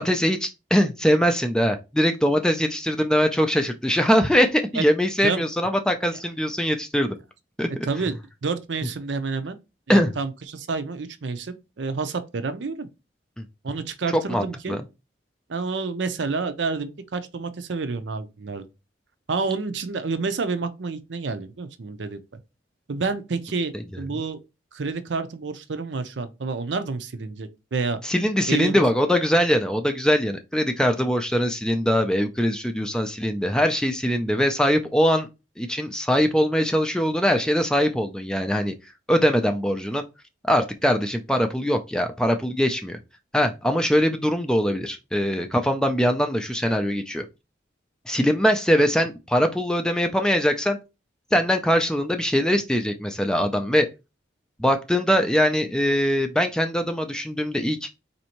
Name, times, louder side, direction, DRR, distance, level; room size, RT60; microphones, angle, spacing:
voice 1, 0.0-7.2 7.6-7.7 9.9-10.1 14.1-14.8 28.0-35.3 35.6-38.7 39.1-40.0 40.4-43.0 43.3-47.3 48.1-50.8 51.3-53.9 54.6-57.9, equal, 5° left, 0.3 m, -22 dB
voice 2, 7.8-8.1 8.4-9.6 9.9-12.9 13.6-14.8 15.5-18.7 19.3-22.2 22.9-24.4 24.7-28.0 28.5-28.8, right 4 dB, 75° right, 0.6 m, -29 dB
4.2 x 2.7 x 2.9 m
head